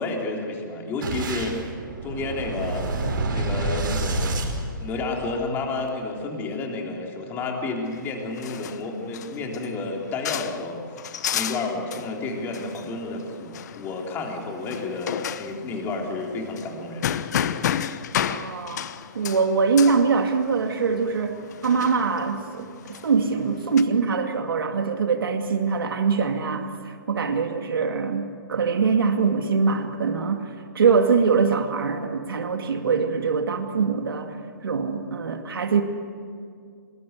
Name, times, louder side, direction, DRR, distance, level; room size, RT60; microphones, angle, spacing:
voice 1, 0.0-1.6 2.0-2.8 3.3-4.3 4.8-10.8 11.3-17.1, left 3 dB, 20° left, 0 dB, 3.6 m, -30 dB
Boom, 1.0-5.4, right 2 dB, 70° right, 5.4 m, -28 dB
sound 1, 7.9-23.8, left 9 dB, 50° left, 1.0 m, -33 dB
voice 2, 18.3-18.8 19.1-21.4 21.6-22.7 23.0-34.3 34.6-35.8, right 5 dB, 85° right, 5 dB, 2.3 m, -23 dB
25.5 x 21.5 x 8.2 m, 2.2 s
hypercardioid pair, 155°, 12 cm